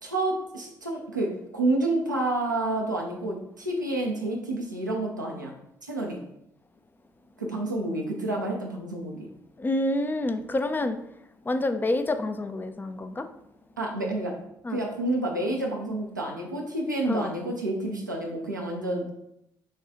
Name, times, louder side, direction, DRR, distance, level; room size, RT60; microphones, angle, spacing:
voice 1, 0.0-5.5 5.8-6.2 7.4-9.3 13.8-14.4 14.7-19.1, right 2 dB, 90° right, 0 dB, 0.6 m, -29 dB
voice 2, 9.6-11.0 11.5-13.3 14.7-14.8 17.1-17.3, left 2 dB, 20° left, 8 dB, 0.4 m, -28 dB
6.4 x 2.3 x 2.9 m, 0.81 s
figure-of-eight pair, 45°, 10 cm